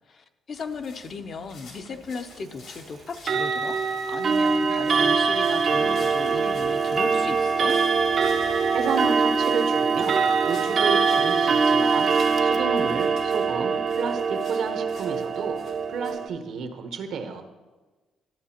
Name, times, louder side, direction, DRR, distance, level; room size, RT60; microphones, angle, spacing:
voice 1, 0.1-3.8 4.1-7.8, left 4 dB, 50° left, 7 dB, 0.7 m, -36 dB
sound 1, 0.5-16.1, left 3 dB, 80° left, 2.4 m, -51 dB
Clock, 3.2-16.3, right 5 dB, 50° right, 0.6 m, -23 dB
voice 2, 8.5-15.6 15.9-17.4, right 5 dB, 75° right, 6 dB, 1.0 m, -32 dB
12.0 x 7.6 x 2.9 m, 1.2 s
cardioid pair, 90°, 0 cm